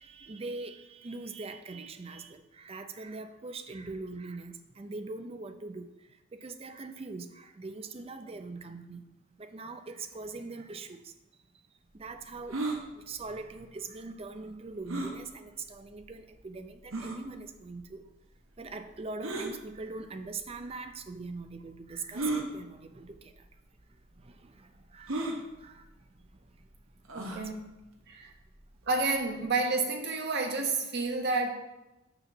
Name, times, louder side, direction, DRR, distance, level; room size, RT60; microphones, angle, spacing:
voice 1, 0.0-5.9 6.3-9.0 9.4-11.1 11.9-12.6 12.9-18.0 18.6-23.4 24.1-25.8 27.3-27.7 28.1-28.3, right 3 dB, 30° right, 8 dB, 0.5 m, -42 dB
sound 1, 12.5-12.8 14.9-15.2 16.0-16.1 16.9-17.2 19.2-19.5 20.6-20.7 22.1-22.5 23.4-23.5 23.8-23.9 25.1-25.4 27.1-27.4, right 2 dB, 80° right, 1.1 m, -33 dB
voice 2, 27.1-27.8 28.1-28.3 28.9-31.5, right 3 dB, 55° right, 3 dB, 1.0 m, -30 dB
6.8 x 4.3 x 5.9 m, 0.99 s
head